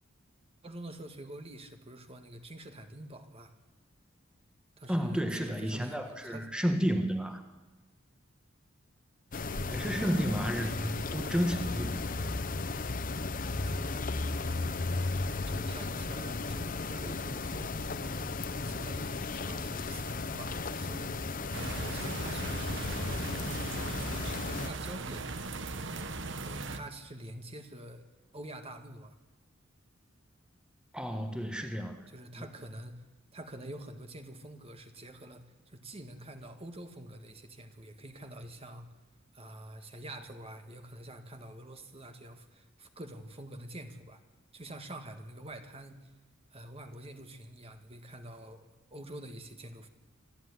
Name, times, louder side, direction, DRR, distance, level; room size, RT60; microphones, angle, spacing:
voice 1, 0.6-3.5 4.8-6.5 9.5-11.0 13.6-14.8 15.5-18.3 18.6-23.3 23.7-24.0 24.6-25.3 25.7-28.0 28.3-29.1 32.1-33.0 33.3-38.9 39.3-44.2 44.5-46.1 46.5-49.9, right 1 dB, 30° right, 7 dB, 1.8 m, -47 dB
voice 2, 4.9-7.4 9.7-12.4 30.9-32.1 32.4-32.5, equal, 5° right, 6 dB, 1.5 m, -32 dB
sound 1, 9.3-24.7, left 3 dB, 45° left, 0.9 m, -35 dB
sound 2, 21.5-26.8, right 3 dB, 65° right, 1.4 m, -38 dB
25.5 x 14.0 x 9.7 m, 1.1 s
head